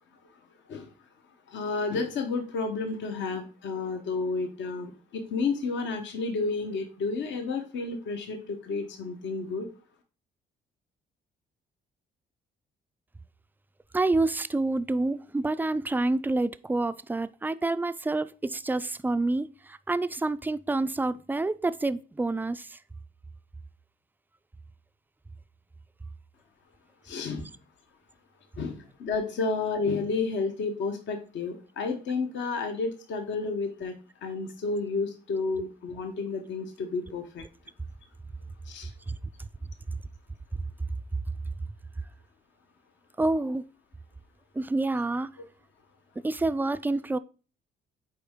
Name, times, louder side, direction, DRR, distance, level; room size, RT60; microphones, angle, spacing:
voice 1, 1.5-9.7 27.0-27.5 28.6-33.9 34.2-37.4 38.7-38.9, left 4 dB, 70° left, 0.9 m, -31 dB
voice 2, 13.9-22.8 39.1-39.2 43.2-43.7 44.5-45.3 46.2-47.2, right 2 dB, 10° right, 0.3 m, -28 dB
6.7 x 4.4 x 3.6 m
cardioid pair, 90°, 20 cm